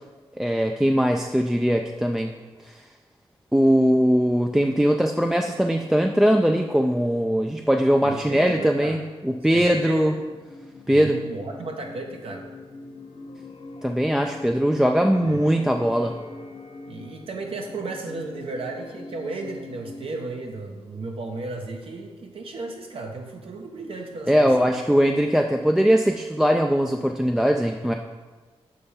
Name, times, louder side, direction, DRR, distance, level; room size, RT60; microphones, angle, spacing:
voice 1, 0.4-2.3 3.5-10.1 10.9-11.2 13.8-16.1 24.3-27.9, equal, 5° right, 3 dB, 0.3 m, -20 dB
voice 2, 8.0-9.0 9.5-10.1 10.9-12.5 15.3-15.4 16.9-24.8, right 3 dB, 60° right, 2 dB, 0.7 m, -34 dB
sound 1, 9.3-20.7, left 3 dB, 65° left, 0.6 m, -43 dB
6.7 x 3.4 x 5.5 m, 1.3 s
wide cardioid pair, 95°, 11 cm